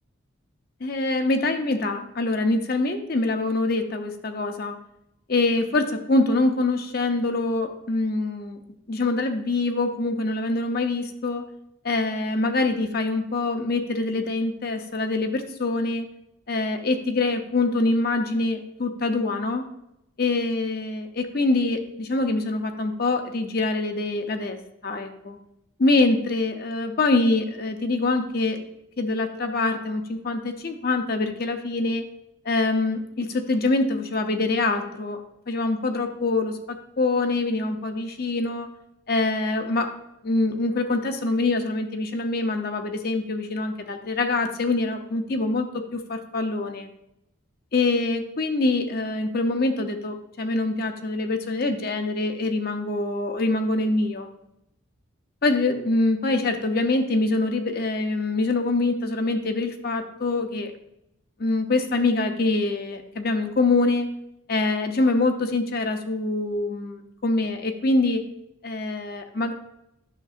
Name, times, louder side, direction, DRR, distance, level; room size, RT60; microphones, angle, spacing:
voice 1, 0.8-4.8 5.3-8.6 8.9-11.4 11.8-16.1 16.5-19.6 20.2-25.4 25.8-28.6 29.0-32.0 32.4-35.2 35.5-38.7 39.1-39.9 40.2-46.9 47.7-54.3 55.4-60.7 61.4-64.1 64.5-68.2 68.6-69.5, left 2 dB, 45° left, 6 dB, 0.6 m, -24 dB
9.9 x 6.6 x 2.5 m, 0.82 s
head